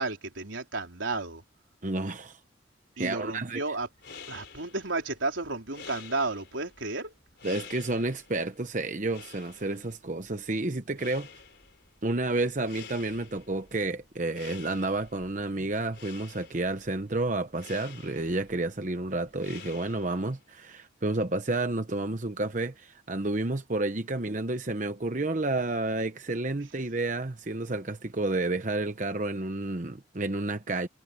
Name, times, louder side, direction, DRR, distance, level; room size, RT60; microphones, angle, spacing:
voice 1, 0.0-1.4 3.0-3.9 4.3-7.1, right 3 dB, 90° right, 4.2 m, -32 dB
voice 2, 1.8-2.4 3.0-3.6 7.4-11.3 12.0-30.9, right 2 dB, 40° right, 0.9 m, -30 dB
sound 1, 3.9-20.4, left 6 dB, 60° left, 5.3 m, -50 dB
head